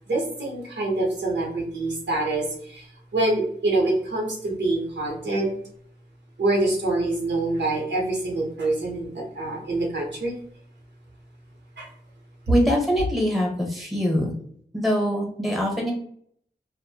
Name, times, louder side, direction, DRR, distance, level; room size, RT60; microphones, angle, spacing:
voice 1, 0.1-2.8 3.1-5.5 6.4-10.3 11.8-11.9, right 2 dB, 80° right, -2 dB, 0.8 m, -25 dB
voice 2, 12.5-14.3 14.7-15.9, equal, ahead, -1 dB, 0.8 m, -23 dB
2.6 x 2.1 x 2.7 m, 0.63 s
wide cardioid pair, 70°, 18 cm